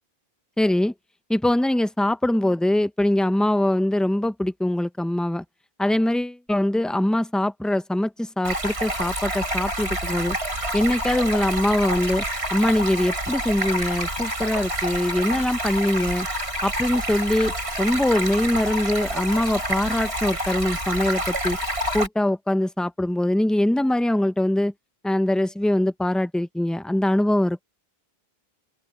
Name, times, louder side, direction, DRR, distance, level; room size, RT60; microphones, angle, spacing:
voice 1, 0.6-0.9 1.3-5.4 5.8-10.4 10.7-12.2 12.5-16.3 16.6-21.6 21.9-24.7 25.0-27.6, left 1 dB, ahead, 0.6 m, -22 dB
Stream, 8.4-22.1, right 1 dB, 90° right, 6.8 m, -28 dB
open air
omnidirectional pair, 1.1 m